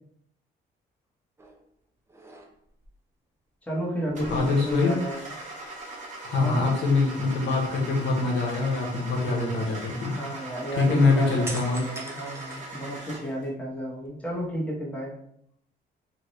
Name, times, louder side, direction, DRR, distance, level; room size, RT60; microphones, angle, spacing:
sound 1, 1.4-1.7 2.1-2.9 4.1-5.3 5.6-5.8 11.4-13.3 13.8-14.7, right 1 dB, 15° right, 0.6 m, -43 dB
voice 1, 3.6-5.3 6.4-6.8 10.0-15.2, equal, 5° left, -5 dB, 1.1 m, -32 dB
Car / Engine starting, 4.2-13.4, right 2 dB, 40° right, 1.0 m, -40 dB
voice 2, 4.3-5.0 6.2-10.1 10.8-11.8, left 3 dB, 70° left, -1 dB, 1.0 m, -24 dB
2.8 x 2.5 x 3.1 m, 0.70 s
cardioid pair, 90°, 20 cm